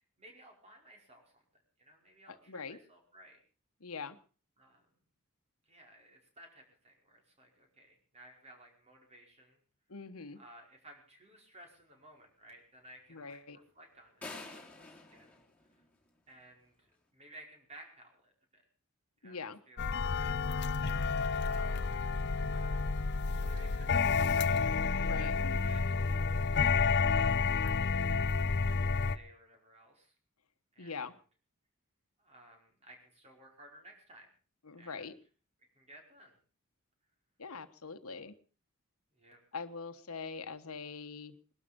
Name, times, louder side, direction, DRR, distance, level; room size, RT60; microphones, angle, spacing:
voice 1, 0.2-3.4 4.6-4.9 5.7-9.6 10.4-15.4 16.3-18.6 19.2-19.4 19.7-20.9 21.4-22.0 22.5-23.1 23.4-24.6 25.2-26.0 26.9-30.1 30.7-31.1 32.2-34.3 34.8-35.1 35.7-36.4 38.1-38.2 39.1-39.4, right 1 dB, 30° right, 2 dB, 5.1 m, -57 dB
voice 2, 2.3-2.8 3.8-4.2 9.9-10.4 13.1-13.6 19.2-19.6 25.0-25.6 30.8-31.1 34.6-35.1 37.4-38.3 39.5-41.4, left 5 dB, 90° left, 11 dB, 1.3 m, -43 dB
sound 1, 14.2-16.4, left 2 dB, 5° left, 3.9 m, -48 dB
sound 2, 19.8-29.2, left 4 dB, 50° left, 0.7 m, -30 dB
20.5 x 12.5 x 5.2 m, 0.40 s
head